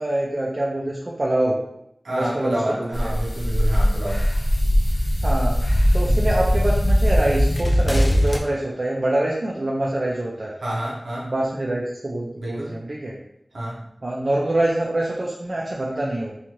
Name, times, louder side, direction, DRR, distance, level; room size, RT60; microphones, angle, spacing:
voice 1, 0.0-1.6 2.1-3.1 5.2-5.6 5.9-10.5 11.2-13.2 14.0-16.3, right 1 dB, 50° right, -3 dB, 0.4 m, -25 dB
voice 2, 2.0-4.2 6.0-6.2 10.6-11.3 12.3-12.7 13.5-13.8, right 1 dB, 85° right, -5 dB, 0.8 m, -28 dB
sound 1, 2.9-8.4, equal, 45° left, 0.4 m, -20 dB
2.6 x 2.4 x 2.9 m, 0.80 s
wide cardioid pair, 65°, 0 cm